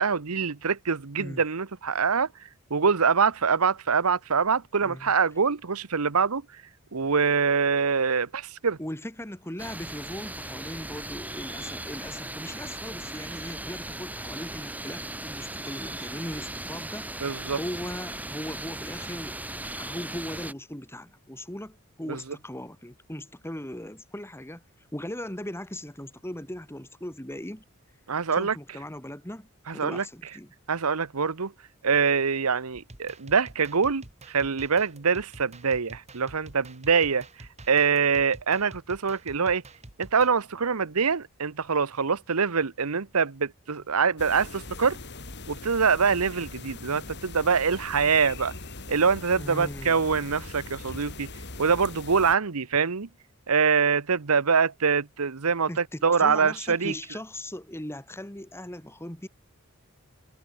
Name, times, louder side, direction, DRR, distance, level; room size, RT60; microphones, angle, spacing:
voice 1, 0.0-2.3 2.7-6.4 6.9-8.8 17.2-17.6 22.1-22.2 28.1-28.5 29.7-30.0 30.7-31.5 31.8-37.3 37.7-39.6 40.0-45.0 45.5-48.5 48.9-51.3 51.6-53.1 53.5-56.9, right 5 dB, 85° right, 1.0 m, -24 dB
voice 2, 4.8-5.1 8.8-27.6 28.3-30.5 49.3-50.0 55.7-59.3, left 1 dB, 10° left, 3.1 m, -39 dB
sound 1, 9.6-20.5, right 1 dB, 5° right, 3.5 m, -37 dB
sound 2, 32.7-40.3, right 2 dB, 30° right, 2.5 m, -48 dB
sound 3, 44.2-52.4, left 3 dB, 55° left, 4.3 m, -41 dB
head